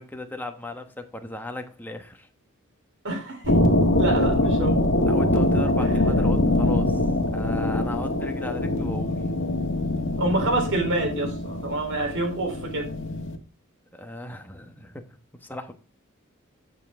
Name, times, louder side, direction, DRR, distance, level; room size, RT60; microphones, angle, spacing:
voice 1, 0.0-2.3 4.2-4.3 5.0-7.0 7.3-9.2 13.9-15.1 15.4-15.7, left 1 dB, 10° left, 5 dB, 1.2 m, -36 dB
voice 2, 3.0-3.6 3.9-4.8 5.8-5.9 10.2-12.9, right 2 dB, 60° right, 3 dB, 3.9 m, -27 dB
sound 1, 3.4-13.4, left 1 dB, 60° left, 1.6 m, -23 dB
10.0 x 7.0 x 3.6 m, 0.34 s
head